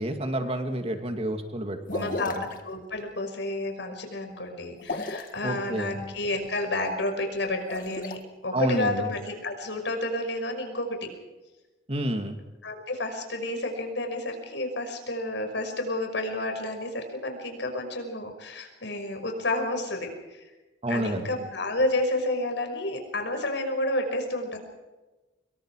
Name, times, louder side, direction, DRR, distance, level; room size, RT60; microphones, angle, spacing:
voice 1, 0.0-2.2 5.4-5.9 8.5-9.1 11.9-12.4 20.8-21.3, right 1 dB, 35° right, 5 dB, 2.5 m, -29 dB
sound 1, 1.9-2.6 4.8-5.4 7.5-8.2, left 2 dB, 50° left, 1.8 m, -34 dB
voice 2, 2.0-11.1 12.6-20.5 20.9-24.6, left 1 dB, 80° left, 5 dB, 5.9 m, -30 dB
26.0 x 23.0 x 4.9 m, 1.1 s
head